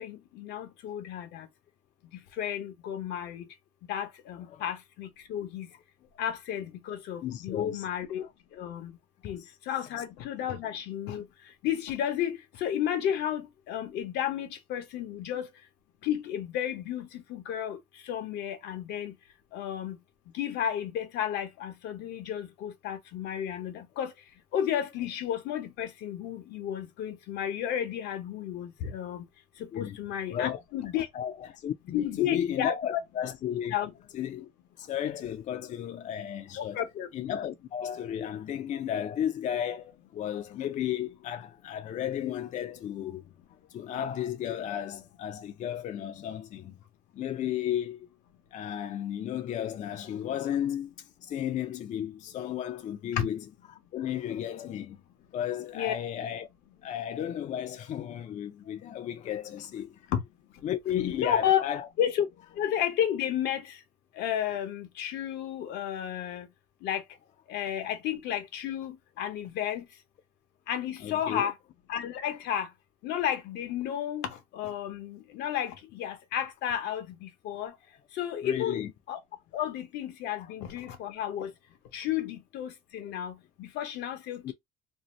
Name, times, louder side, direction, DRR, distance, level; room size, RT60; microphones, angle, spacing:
voice 1, 0.0-1.5 2.4-3.5 3.9-5.7 6.2-8.2 8.5-8.9 9.2-11.3 11.6-15.5 16.0-17.8 18.0-19.1 19.5-20.0 20.3-24.1 24.5-29.2 29.6-31.1 31.9-33.0 33.7-33.9 36.6-37.1 53.1-53.2 55.7-55.9 60.1-60.2 61.2-61.7 62.0-62.3 62.6-63.8 64.1-66.5 66.8-67.0 67.5-69.9 70.7-71.5 71.9-72.7 73.0-77.7 78.1-78.8 79.1-79.2 79.5-81.5 81.9-84.5, left 10 dB, 85° left, 0.8 m, -32 dB
voice 2, 7.2-7.9 8.2-8.3 9.2-9.5 29.7-30.0 30.3-30.6 31.1-33.7 34.1-34.5 34.8-36.8 37.1-43.3 43.7-46.8 47.1-48.1 48.5-53.4 53.7-55.0 55.3-56.5 56.8-60.1 60.6-61.9 71.0-71.5 78.4-78.9 80.4-80.5 84.4-84.5, left 10 dB, 45° left, 0.4 m, -34 dB
2.7 x 2.0 x 3.0 m
cardioid pair, 110°, 17 cm